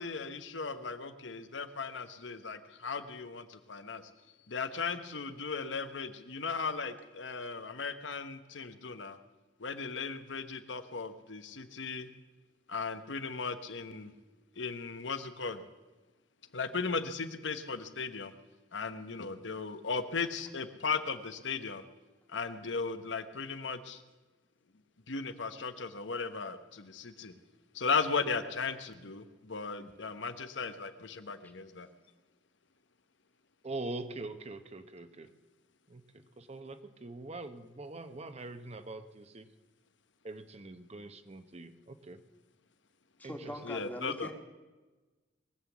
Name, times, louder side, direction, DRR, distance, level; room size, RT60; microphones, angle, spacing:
voice 1, 0.0-4.0 4.5-9.2 9.6-12.1 12.7-14.1 14.6-15.6 16.5-18.3 18.7-21.8 22.3-24.0 25.1-27.3 27.7-31.9 43.6-44.3, left 4 dB, 85° left, 10 dB, 1.1 m, -36 dB
voice 2, 33.6-35.3 35.9-36.0 36.4-39.5 40.2-42.2 43.2-43.3, right 2 dB, 35° right, 9 dB, 0.8 m, -43 dB
voice 3, 43.2-44.3, equal, 10° left, 4 dB, 1.5 m, -42 dB
21.5 x 8.1 x 7.2 m, 1.2 s
head